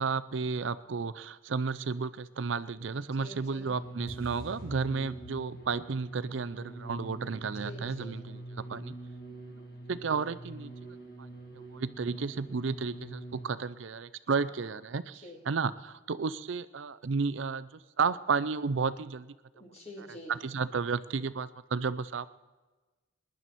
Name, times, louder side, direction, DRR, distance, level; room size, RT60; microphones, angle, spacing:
voice 1, 0.0-8.9 9.9-11.3 11.5-17.7 18.0-19.3 20.0-22.3, right 5 dB, 75° right, 14 dB, 0.5 m, -33 dB
voice 2, 3.2-3.8 7.6-8.1 14.4-14.5 15.2-15.4 19.6-20.3, left 1 dB, 35° left, 0 dB, 2.9 m, -46 dB
sound 1, 3.7-13.5, right 2 dB, 50° left, 2.6 m, -44 dB
21.0 x 10.5 x 4.2 m, 1.2 s
head